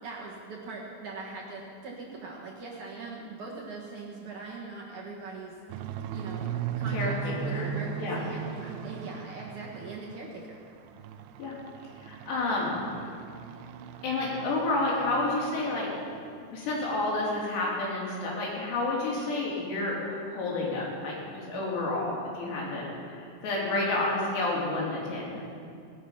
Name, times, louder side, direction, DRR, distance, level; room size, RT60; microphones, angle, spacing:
voice 1, 0.0-5.6 6.1-10.6, right 3 dB, 55° right, -4 dB, 2.4 m, -41 dB
sound 1, 5.7-10.3 10.6-15.9 16.1-16.4 16.8-16.9 17.3-17.4, right 8 dB, 85° right, 2.7 m, -38 dB
voice 2, 6.9-7.7 8.0-8.2 11.4-11.6 12.0-12.9 14.0-15.9 16.5-25.4, left 2 dB, 70° left, -4 dB, 5.1 m, -30 dB
18.5 x 12.0 x 5.7 m, 2.4 s
omnidirectional pair, 5.1 m